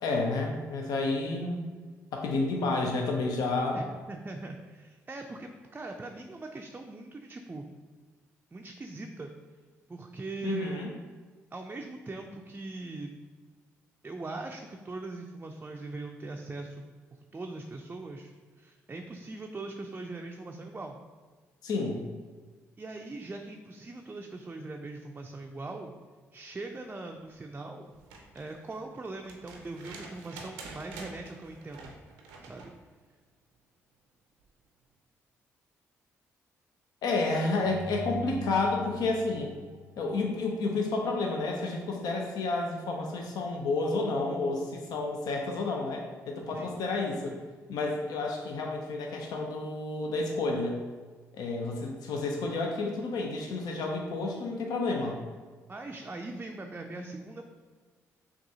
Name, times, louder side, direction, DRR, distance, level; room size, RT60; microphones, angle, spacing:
voice 1, 0.0-1.7 2.1-3.8 10.4-10.9 21.6-22.0 37.0-39.5 40.0-47.4 47.7-50.8 51.3-55.2, left 3 dB, 65° left, 1 dB, 0.5 m, -30 dB
voice 2, 3.7-7.6 8.5-9.3 9.9-10.9 11.5-13.1 14.0-16.8 17.3-18.3 18.6-21.0 22.8-25.9 26.3-27.9 28.3-31.9 32.4-32.7 46.5-46.7 55.7-57.4, right 2 dB, 25° right, 2 dB, 0.4 m, -41 dB
sound 1, 27.9-32.8 34.4-34.5, right 3 dB, 85° right, 0.5 m, -48 dB
sound 2, 37.6-40.8, right 2 dB, 30° left, 1.1 m, -42 dB
6.0 x 2.4 x 2.8 m, 1.5 s
hypercardioid pair, 45°, 7 cm